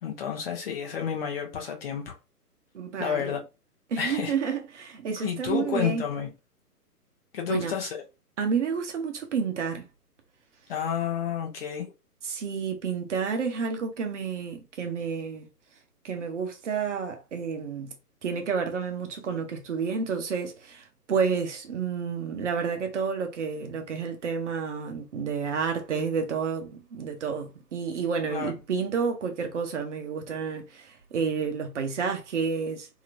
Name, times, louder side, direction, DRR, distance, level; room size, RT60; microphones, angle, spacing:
voice 1, 0.0-2.2 3.0-3.4 4.0-4.3 5.2-6.3 7.3-8.0 10.7-11.9 28.3-28.5, left 7 dB, 40° left, 0.8 m, -30 dB
voice 2, 2.7-3.4 3.9-6.0 7.5-7.7 8.4-9.8 12.2-15.5 16.0-17.9 18.2-32.9, right 6 dB, 50° right, 0.8 m, -30 dB
2.9 x 2.9 x 2.4 m
figure-of-eight pair, 125°, 47 cm